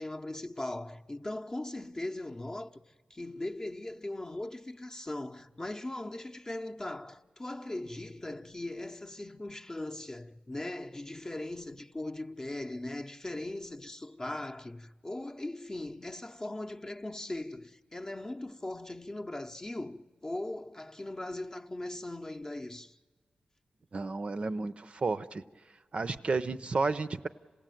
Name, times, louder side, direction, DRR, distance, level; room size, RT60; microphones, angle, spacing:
voice 1, 0.0-2.8 3.1-23.0, left 1 dB, 20° left, 0.7 m, -39 dB
voice 2, 23.9-25.4 25.9-27.3, right 3 dB, 45° right, 0.6 m, -32 dB
27.0 x 16.5 x 9.1 m
wide cardioid pair, 85°, 3 cm